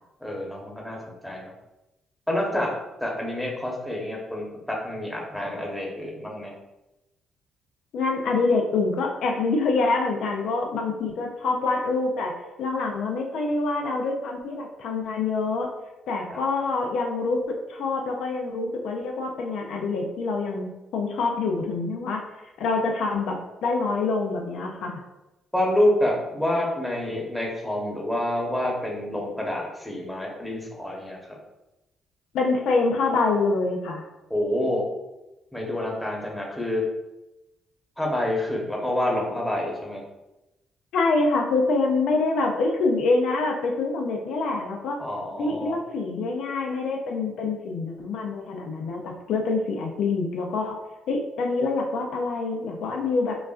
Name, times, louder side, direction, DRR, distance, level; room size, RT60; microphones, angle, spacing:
voice 1, 0.2-1.5 2.3-2.7 3.0-6.5 16.3-16.4 25.5-31.4 34.3-34.8 35.5-36.8 38.0-40.0 45.0-45.8, left 1 dB, 5° left, -2 dB, 1.0 m, -27 dB
voice 2, 7.9-15.7 16.1-22.2 22.6-25.0 32.3-34.0 40.9-45.0 45.4-50.8 51.1-53.4, left 3 dB, 80° left, 1 dB, 0.5 m, -26 dB
5.1 x 2.4 x 2.4 m, 0.97 s
cardioid pair, 90°, 0 cm